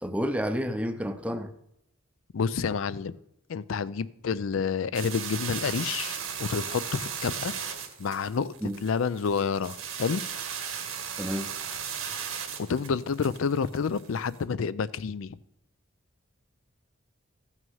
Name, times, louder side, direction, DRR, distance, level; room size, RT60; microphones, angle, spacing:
voice 1, 0.0-1.5 8.6-8.8 11.2-11.5, equal, 5° right, 0.6 m, -30 dB
voice 2, 2.3-3.1 3.5-7.5 8.0-8.5 8.8-10.2 12.7-15.4, left 5 dB, 70° left, 0.4 m, -29 dB
sound 1, 4.9-14.4, right 7 dB, 85° right, 1.6 m, -36 dB
14.5 x 6.1 x 5.5 m
head